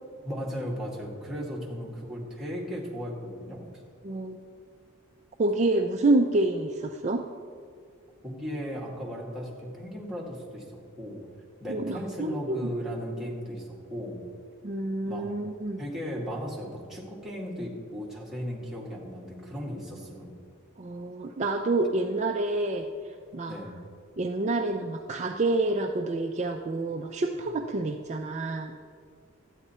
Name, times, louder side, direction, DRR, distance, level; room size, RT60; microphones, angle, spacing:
voice 1, 0.2-3.6 8.2-11.2 11.6-14.2 15.0-15.3 15.8-20.3 23.5-23.8, equal, ahead, -5 dB, 1.9 m, -36 dB
voice 2, 4.0-4.4 5.4-7.2 11.7-12.6 14.6-15.8 20.8-22.9 23.3-23.6 24.2-28.8, right 2 dB, 35° right, 4 dB, 0.4 m, -28 dB
12.5 x 9.1 x 4.3 m, 2.2 s
head